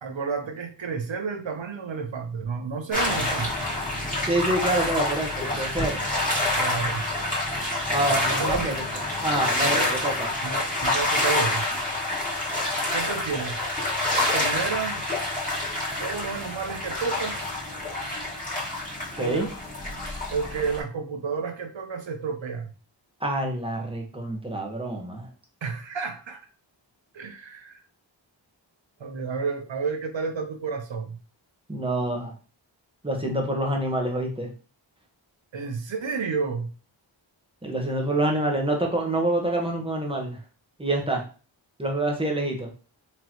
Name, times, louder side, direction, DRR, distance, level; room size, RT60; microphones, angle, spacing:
voice 1, 0.0-3.5 6.6-7.0 8.1-8.8 9.6-10.0 10.4-11.6 12.9-13.6 14.3-15.0 15.7-17.5 19.2-19.5 20.3-22.7 25.6-26.4 27.1-27.8 29.0-31.2 35.5-36.7, right 5 dB, 70° right, 5 dB, 0.9 m, -31 dB
sound 1, 2.9-20.8, left 2 dB, 15° left, 2.1 m, -27 dB
voice 2, 4.3-6.0 7.9-8.7 9.2-10.3 19.2-19.5 23.2-25.3 31.7-32.3 33.0-34.5 37.6-40.4 40.8-41.2 41.8-42.7, right 1 dB, 10° right, 1 dB, 1.3 m, -26 dB
4.1 x 3.0 x 3.0 m, 0.36 s
cardioid pair, 40°, 46 cm